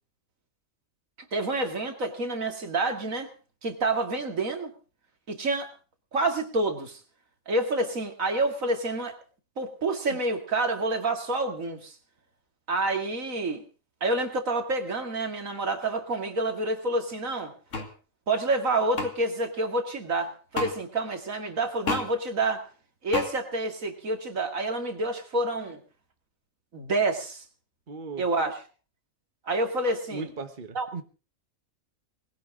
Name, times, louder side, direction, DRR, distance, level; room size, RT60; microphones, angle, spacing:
voice 1, 1.3-3.3 3.6-4.7 5.3-5.7 6.1-7.0 7.5-9.1 9.6-11.9 12.7-13.6 14.0-17.5 18.3-22.6 23.0-25.8 26.7-27.4 28.2-28.5 29.5-30.3 30.7-30.9, right 2 dB, 75° right, 5 dB, 2.7 m, -28 dB
sound 1, 17.7-17.9 19.0-19.1 20.5-20.7 21.9-22.1 23.1-23.3, left 3 dB, 65° left, 2.3 m, -29 dB
voice 2, 27.9-28.2 30.1-31.0, right 4 dB, 40° right, 7 dB, 1.4 m, -37 dB
20.0 x 17.0 x 3.8 m, 0.37 s
omnidirectional pair, 1.4 m